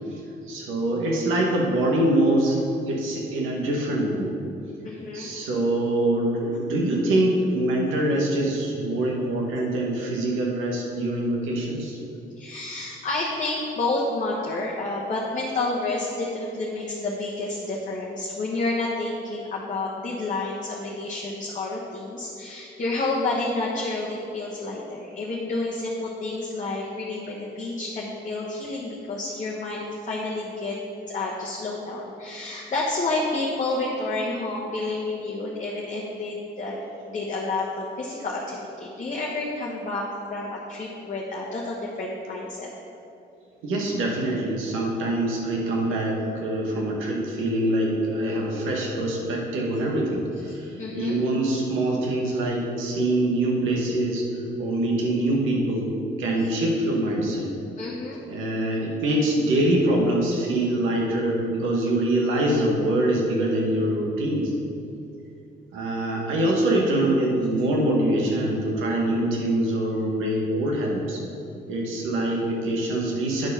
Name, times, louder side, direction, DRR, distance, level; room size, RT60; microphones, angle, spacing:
voice 1, 0.5-2.6 2.9-4.4 5.1-12.0 43.6-54.3 54.6-55.9 56.2-57.5 58.3-64.5 65.7-71.2 71.7-73.5, right 1 dB, 90° right, -1 dB, 1.6 m, -24 dB
voice 2, 4.8-5.3 12.4-30.8 31.1-36.8 37.1-42.7 50.5-51.2 56.4-56.5 57.8-58.2, left 2 dB, 40° left, -4 dB, 1.1 m, -30 dB
9.5 x 4.4 x 5.7 m, 2.7 s
cardioid pair, 90°, 20 cm